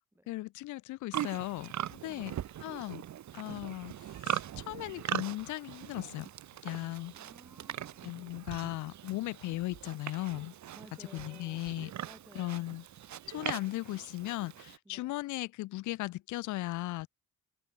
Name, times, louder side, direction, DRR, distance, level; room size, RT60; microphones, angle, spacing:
voice 1, 0.3-2.3 2.6-3.0 3.3-3.9 4.2-6.3 6.6-7.1 8.0-10.5 11.1-11.9 12.4-12.8 13.3-17.1, left 18 dB, 75° left, 0.5 m, -37 dB
Livestock farm animals working animals, 1.1-14.8, right 11 dB, 65° right, 2.4 m, -41 dB
voice 2, 2.1-2.4 6.9-8.4 10.8-11.8 12.1-12.8 14.8-15.2, right 1 dB, 10° right, 7.5 m, -57 dB
cardioid pair, 90°, 30 cm